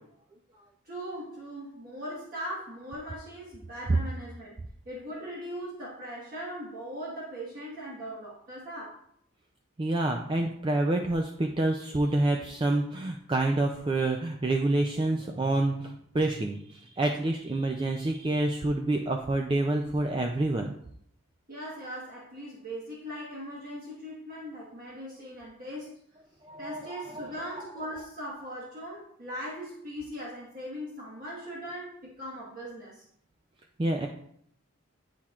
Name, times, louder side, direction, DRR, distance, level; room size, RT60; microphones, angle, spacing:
voice 1, 0.8-4.6 4.8-9.0 21.5-25.9 26.6-33.0, equal, 40° right, -6 dB, 1.4 m, -40 dB
voice 2, 9.8-20.7 26.4-27.5 33.8-34.1, right 2 dB, 25° right, 3 dB, 0.3 m, -28 dB
10.0 x 4.3 x 2.4 m, 0.69 s
head